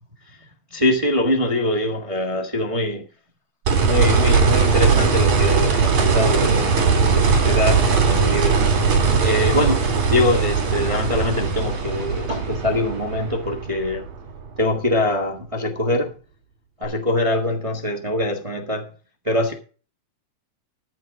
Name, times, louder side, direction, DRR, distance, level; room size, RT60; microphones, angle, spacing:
voice 1, 0.7-3.0 3.8-8.6 9.2-14.1 14.6-16.1 16.8-18.9 19.2-19.5, left 1 dB, 35° right, 0.5 m, -23 dB
sound 1, 3.7-14.6 16.8-16.9, right 5 dB, 65° right, 4.4 m, -19 dB
13.5 x 5.5 x 6.4 m
omnidirectional pair, 3.6 m